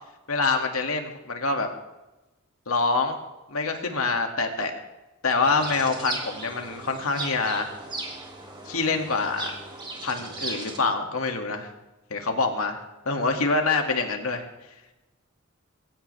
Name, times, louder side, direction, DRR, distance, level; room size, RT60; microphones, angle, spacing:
voice 1, 0.3-1.7 2.7-3.2 3.5-4.7 5.2-7.7 8.6-9.5 10.0-11.7 12.1-12.8 13.1-14.5, left 3 dB, 90° left, 4 dB, 2.3 m, -25 dB
sound 1, 5.4-10.8, right 2 dB, 25° right, 2.8 m, -37 dB
22.0 x 16.0 x 3.4 m, 1.0 s
head